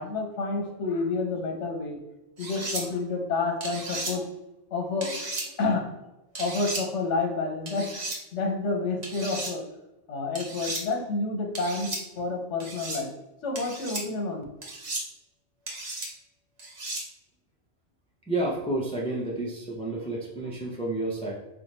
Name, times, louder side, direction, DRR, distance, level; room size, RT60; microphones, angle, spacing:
voice 1, 0.0-2.0 2.4-4.3 4.7-5.9 6.4-7.9 8.3-9.7 10.1-13.1 13.4-14.4, left 3 dB, 80° left, 2 dB, 1.1 m, -29 dB
sound 1, 2.4-2.8 3.6-4.1 5.0-5.5 6.3-6.8 7.7-8.2 9.0-9.5 10.3-10.8 11.5-12.0 12.6-13.0 13.5-14.0 14.6-15.0 15.7-16.1 16.6-17.0, right 2 dB, 40° right, 0.8 m, -34 dB
voice 2, 18.3-21.3, right 2 dB, 10° left, -3 dB, 0.3 m, -30 dB
3.3 x 2.4 x 4.1 m, 0.96 s
omnidirectional pair, 1.2 m